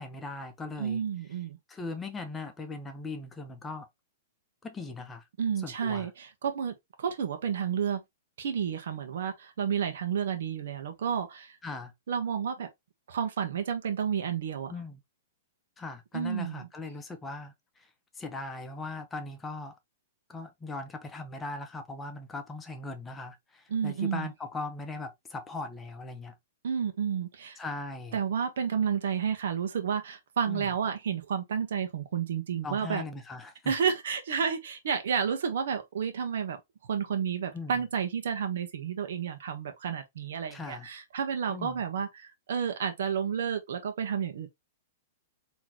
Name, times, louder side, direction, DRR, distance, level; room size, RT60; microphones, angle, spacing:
voice 1, 0.0-1.0 1.7-3.9 4.6-5.2 5.6-6.1 11.6-11.9 14.7-15.0 15.8-17.9 18.1-19.7 20.3-26.3 27.6-28.2 30.5-30.7 32.6-33.7 37.5-37.8 40.5-40.9 41.5-41.8, left 3 dB, 15° left, 0.9 m, -39 dB
voice 2, 0.8-1.6 5.4-8.0 8.4-11.6 12.1-12.7 13.1-14.7 16.1-16.7 23.7-24.3 26.6-27.6 28.1-33.0 33.6-36.6 36.9-44.5, right 7 dB, 75° right, 1.1 m, -31 dB
3.9 x 3.1 x 3.0 m
hypercardioid pair, 135°, 0 cm